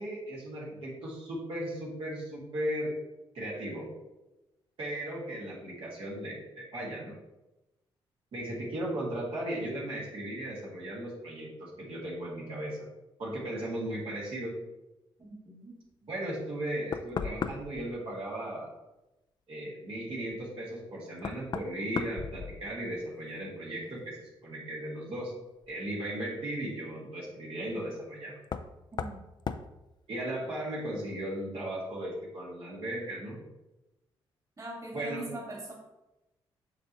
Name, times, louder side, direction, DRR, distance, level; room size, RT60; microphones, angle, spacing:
voice 1, 0.0-2.9 3.3-3.9 4.8-7.1 8.3-12.9 13.2-14.5 16.1-18.7 19.5-25.3 25.7-28.3 30.1-33.4 34.9-35.2, right 1 dB, 70° right, -6 dB, 2.3 m, -36 dB
voice 2, 15.2-15.8 28.9-29.2 34.6-35.7, right 1 dB, 35° right, -3 dB, 2.2 m, -42 dB
Knock, 16.5-16.6 16.9-17.9 20.3-20.4 21.2-23.0 23.4-23.9 25.6-25.7 28.4-28.7 29.0-29.2 29.5-29.7, left 6 dB, 50° left, 0.4 m, -36 dB
7.2 x 5.5 x 3.1 m, 0.99 s
cardioid pair, 75°, 10 cm